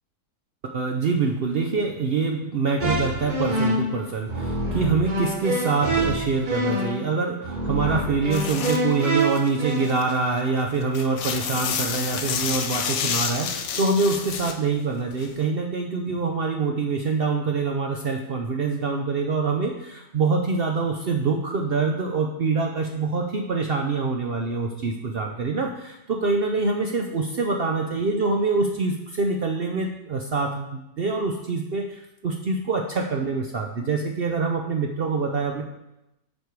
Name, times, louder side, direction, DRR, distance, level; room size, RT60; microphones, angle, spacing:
voice 1, 0.6-35.6, right 4 dB, 75° right, 3 dB, 0.5 m, -25 dB
sound 1, 2.8-9.9, right 1 dB, 30° right, 1.1 m, -26 dB
sound 2, 8.3-8.8 9.2-10.3 10.7-14.6 15.1-15.3, left 7 dB, 65° left, 0.7 m, -29 dB
7.7 x 5.3 x 4.6 m, 0.89 s
omnidirectional pair, 1.8 m